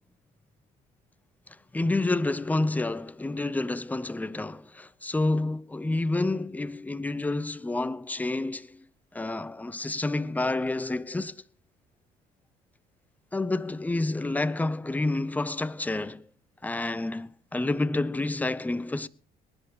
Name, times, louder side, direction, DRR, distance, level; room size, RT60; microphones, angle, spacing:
voice 1, 1.5-8.8 9.1-11.4 13.3-16.3 16.6-19.1, left 2 dB, 10° left, 0.7 m, -29 dB
19.5 x 10.5 x 4.9 m
cardioid pair, 110°, 17 cm